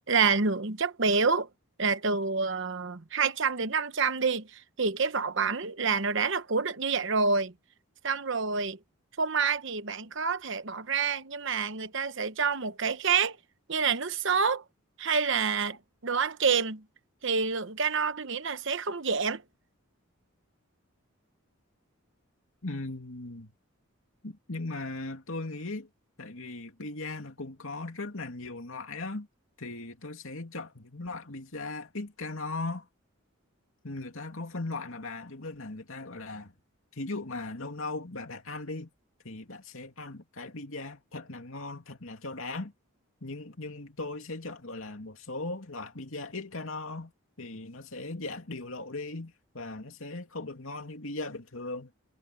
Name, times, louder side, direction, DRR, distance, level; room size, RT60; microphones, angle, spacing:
voice 1, 0.1-1.5 1.8-7.5 8.0-8.8 9.2-13.4 13.7-14.6 15.0-16.8 17.2-19.4, right 5 dB, 55° right, 1.0 m, -28 dB
voice 2, 22.6-23.5 24.2-25.9 26.2-29.3 29.6-32.9 33.8-36.5 36.9-38.9 39.2-42.7 43.2-47.1 47.4-51.9, left 2 dB, 70° left, 2.7 m, -38 dB
head